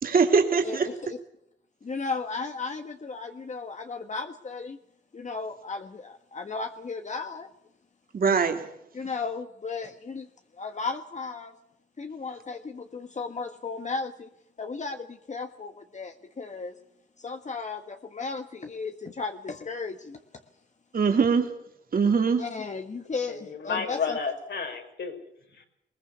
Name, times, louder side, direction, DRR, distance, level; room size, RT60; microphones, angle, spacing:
voice 1, 0.0-0.9 8.1-8.7 20.9-21.5 21.9-22.5, right 5 dB, 50° right, 4 dB, 2.9 m, -22 dB
voice 2, 0.6-1.2 1.8-4.8 5.1-7.5 8.9-10.3 10.6-11.5 12.0-14.3 14.6-16.7 17.2-20.2 22.4-24.2, left 4 dB, 40° left, 6 dB, 1.5 m, -35 dB
voice 3, 23.3-25.2 25.5-25.6, left 5 dB, 65° left, 5 dB, 5.2 m, -32 dB
21.0 x 20.0 x 7.0 m, 0.78 s
cardioid pair, 100°, 19 cm